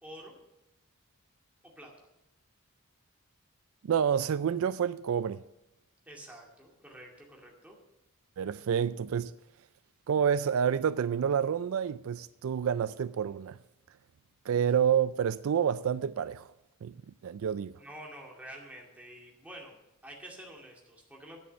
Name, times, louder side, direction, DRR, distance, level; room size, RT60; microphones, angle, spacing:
voice 1, 0.0-0.3 1.8-2.1 6.1-7.8 17.8-21.4, right 1 dB, 5° right, 2.2 m, -48 dB
voice 2, 3.8-5.4 8.4-9.3 10.1-13.6 14.5-16.5 16.8-16.9 17.2-17.8, right 8 dB, 70° right, 0.3 m, -28 dB
9.9 x 7.8 x 7.6 m
head